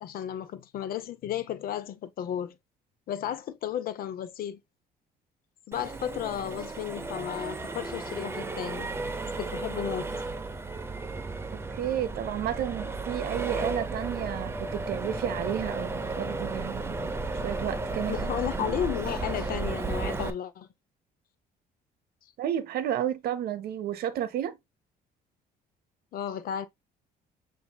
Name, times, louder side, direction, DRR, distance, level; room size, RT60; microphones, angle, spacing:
voice 1, 0.0-2.6 3.1-4.6 5.7-8.9 9.4-10.1 18.1-20.7 26.1-26.7, left 10 dB, 60° left, 0.7 m, -33 dB
Accelerating revving vroom, 5.7-20.3, right 3 dB, 15° right, 0.6 m, -34 dB
voice 2, 11.5-17.0 17.4-18.2 18.5-18.7 22.4-24.6, right 10 dB, 70° right, 0.8 m, -32 dB
7.0 x 2.7 x 2.2 m
cardioid pair, 110°, 17 cm